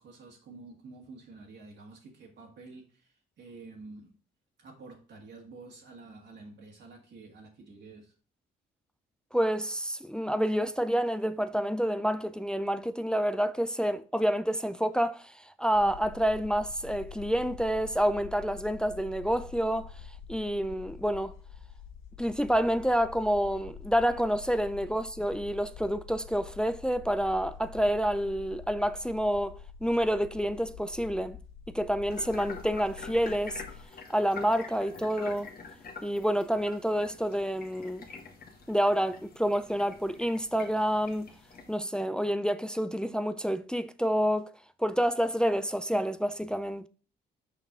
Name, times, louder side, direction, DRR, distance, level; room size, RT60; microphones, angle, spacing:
voice 1, 0.0-4.2 4.6-8.1, right 3 dB, 60° right, 1.7 m, -49 dB
voice 2, 9.3-15.3 15.6-19.9 20.3-21.3 22.2-31.4 31.7-33.6 34.1-35.5 36.0-38.1 38.7-41.3 41.7-44.5 44.8-46.9, equal, 5° left, 0.4 m, -28 dB
sound 1, 15.7-33.8, left 6 dB, 90° left, 0.6 m, -47 dB
sound 2, 32.1-41.8, left 4 dB, 50° left, 1.6 m, -46 dB
5.8 x 5.3 x 3.7 m
cardioid pair, 90°, 20 cm